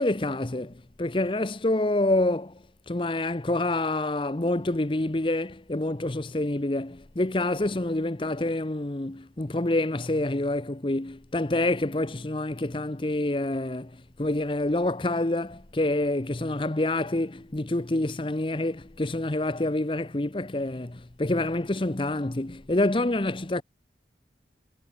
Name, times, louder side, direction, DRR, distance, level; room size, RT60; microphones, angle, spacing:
voice 1, 0.0-2.6 2.9-23.6, left 2 dB, 30° left, 0.8 m, -27 dB
head